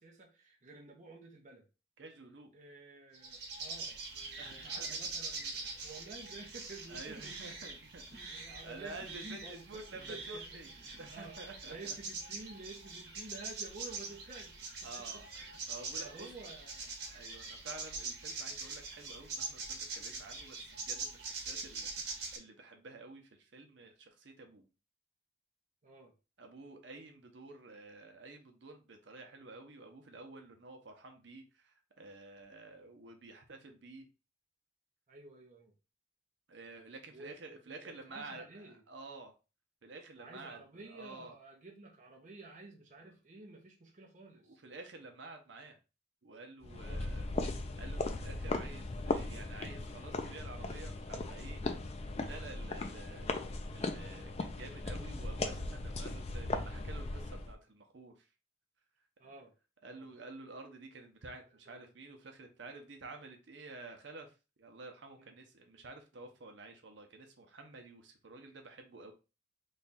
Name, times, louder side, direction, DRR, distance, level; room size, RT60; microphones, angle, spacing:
voice 1, 0.0-1.7 2.5-7.7 8.3-9.8 10.1-10.4 10.8-14.7 15.0-15.7 16.0-17.0 25.8-26.1 35.1-35.7 37.1-37.3 37.7-38.8 40.2-44.6 46.8-47.1 52.9-53.0 59.2-59.5 59.8-60.1 61.7-61.9 65.2-65.4, right 3 dB, 40° right, 0.6 m, -52 dB
voice 2, 2.0-2.5 4.4-5.0 6.9-10.7 11.0-12.0 14.8-16.3 17.1-24.6 26.4-34.0 36.5-39.3 39.8-40.6 40.9-41.3 44.4-45.8 46.2-47.3 47.8-51.6 52.2-53.3 53.7-58.1 59.8-64.3 64.6-69.1, right 3 dB, 75° right, 0.7 m, -50 dB
sound 1, 3.1-22.4, right 3 dB, 60° right, 1.1 m, -43 dB
sound 2, 46.6-57.5, left 2 dB, 35° left, 0.4 m, -38 dB
3.2 x 2.3 x 4.0 m
head